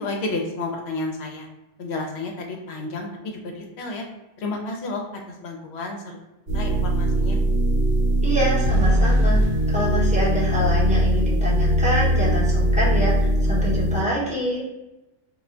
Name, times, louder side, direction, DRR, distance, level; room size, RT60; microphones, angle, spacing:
voice 1, 0.0-1.5 1.8-4.1 4.4-6.2 6.5-7.4, left 2 dB, 65° left, 2 dB, 0.8 m, -31 dB
sound 1, 6.5-14.0, equal, 50° right, 1.2 m, -20 dB
voice 2, 8.2-9.4 9.7-14.6, equal, 5° right, -8 dB, 0.7 m, -26 dB
2.3 x 2.2 x 3.7 m, 1.0 s
omnidirectional pair, 1.2 m